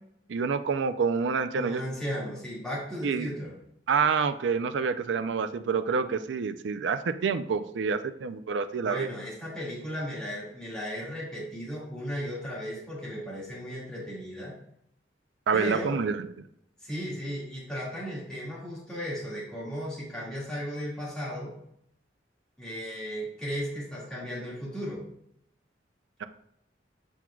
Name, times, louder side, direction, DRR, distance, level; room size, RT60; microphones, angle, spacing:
voice 1, 0.3-1.8 3.0-3.3 3.9-9.1 15.5-16.3, right 5 dB, 85° right, 10 dB, 0.4 m, -27 dB
voice 2, 1.5-3.6 8.8-14.6 15.5-16.0 16.8-21.5 22.6-25.0, equal, 5° left, -7 dB, 1.9 m, -35 dB
8.0 x 5.9 x 2.3 m, 0.74 s
head